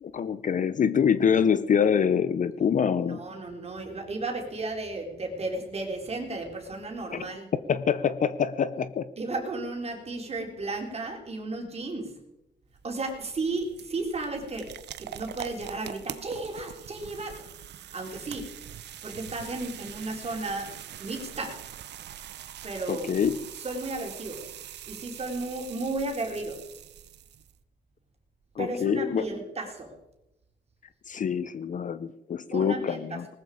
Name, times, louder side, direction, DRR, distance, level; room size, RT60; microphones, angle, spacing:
voice 1, 0.0-3.3 7.1-7.3 7.7-9.1 22.9-23.4 28.6-29.2 31.1-33.3, left 7 dB, 40° left, 14 dB, 0.7 m, -25 dB
voice 2, 3.1-7.5 9.2-12.2 12.8-17.4 17.9-18.5 19.0-20.7 21.0-21.6 22.6-23.1 23.6-24.5 24.9-26.6 28.6-29.9 32.5-33.2, right 2 dB, 30° right, 2 dB, 3.7 m, -34 dB
sound 1, 12.7-27.6, right 11 dB, 65° right, 0.8 m, -43 dB
19.0 x 13.5 x 5.0 m, 0.92 s
cardioid pair, 115°, 19 cm